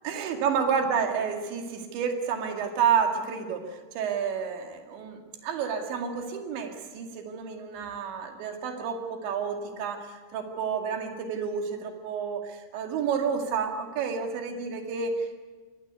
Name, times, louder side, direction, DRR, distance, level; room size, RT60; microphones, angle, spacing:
voice 1, 0.0-3.7 4.0-10.1 10.3-15.4, right 6 dB, 65° right, 4 dB, 4.4 m, -30 dB
24.0 x 19.5 x 8.3 m, 1.4 s
omnidirectional pair, 5.8 m